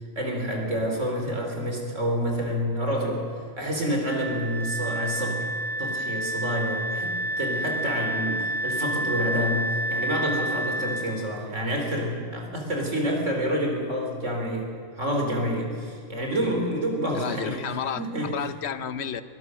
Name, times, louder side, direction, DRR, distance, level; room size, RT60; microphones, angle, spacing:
voice 1, 0.2-3.3 3.6-5.5 5.8-17.6 18.0-18.3, equal, 85° right, 1 dB, 3.9 m, -28 dB
Wind instrument woodwind instrument, 4.1-11.1, right 1 dB, 45° left, 2.5 m, -29 dB
voice 2, 17.1-19.2, left 8 dB, 65° left, 13 dB, 1.0 m, -31 dB
22.5 x 18.5 x 6.3 m, 2.1 s
omnidirectional pair, 1.2 m